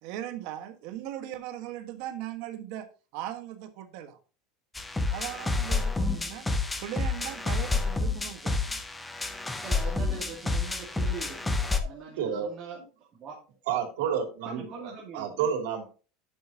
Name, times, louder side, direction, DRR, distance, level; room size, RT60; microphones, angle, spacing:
voice 1, 0.0-2.9 3.1-4.2 5.1-6.5 6.8-8.8, right 12 dB, 55° right, 8 dB, 1.4 m, -39 dB
sound 1, 4.7-11.8, left 3 dB, 5° left, 0.6 m, -29 dB
voice 2, 9.6-12.8 13.1-13.4 14.4-15.5, right 5 dB, 25° right, -4 dB, 2.5 m, -42 dB
voice 3, 11.8-12.5 13.7-14.6 15.1-15.8, right 8 dB, 85° right, 3 dB, 2.6 m, -30 dB
11.5 x 6.6 x 2.8 m, 0.35 s
cardioid pair, 175°, 0 cm